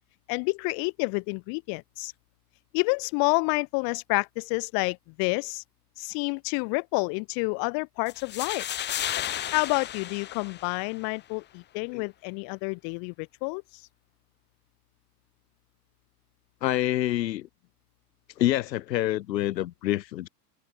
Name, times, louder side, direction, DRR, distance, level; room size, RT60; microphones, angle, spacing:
voice 1, 0.3-2.1 2.7-5.6 6.0-8.6 9.5-13.6, left 37 dB, 45° left, 3.0 m, -29 dB
sound 1, 8.1-11.1, left 11 dB, 20° left, 1.3 m, -33 dB
voice 2, 16.6-17.5 18.4-20.3, left 14 dB, 85° left, 1.3 m, -27 dB
supercardioid pair, 140°, 49 cm